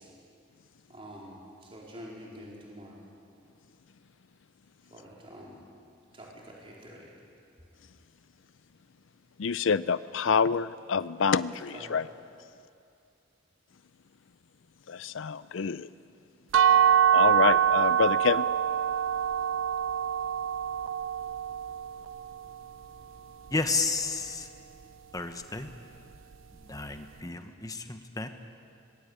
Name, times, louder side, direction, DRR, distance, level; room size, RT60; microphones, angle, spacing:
voice 1, 0.9-1.4 1.7-3.0 4.9-5.5 6.2-6.3 6.6-7.0 11.7-11.8, equal, 30° right, -4 dB, 4.2 m, -46 dB
voice 2, 9.4-12.1 14.9-15.9 17.1-18.5, left 6 dB, 75° left, 15 dB, 0.5 m, -27 dB
sound 1, 16.5-22.3, right 9 dB, 85° right, 0.5 m, -25 dB
voice 3, 23.5-24.5 25.1-25.7 26.5-28.3, left 3 dB, 20° left, 7 dB, 1.2 m, -32 dB
25.0 x 20.5 x 8.5 m, 2.5 s
head